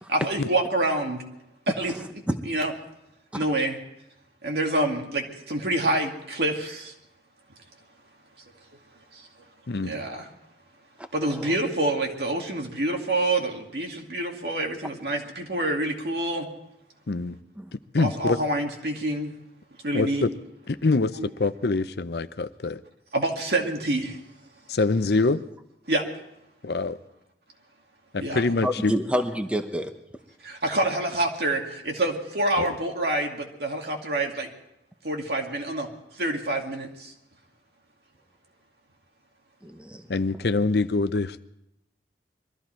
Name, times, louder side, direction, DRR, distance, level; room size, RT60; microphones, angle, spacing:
voice 1, 0.1-1.2 1.8-1.9 2.5-2.7 3.3-3.8 4.4-6.9 9.8-10.2 11.1-16.5 18.0-19.3 19.8-20.3 21.2-21.3 23.1-24.1 25.9-26.0 28.2-28.4 30.5-33.4 33.6-34.5 35.0-35.9 36.2-36.9, right 1 dB, 65° right, 2 dB, 2.3 m, -27 dB
voice 2, 11.2-11.5 17.6-17.7 28.6-29.9 39.6-40.0, equal, 5° right, 6 dB, 0.8 m, -29 dB
voice 3, 17.9-18.4 19.9-20.3 20.7-22.8 24.7-25.4 26.6-27.0 28.1-28.9 32.6-32.7 40.1-41.4, left 3 dB, 65° left, 12 dB, 0.6 m, -24 dB
22.5 x 14.0 x 4.5 m, 0.85 s
head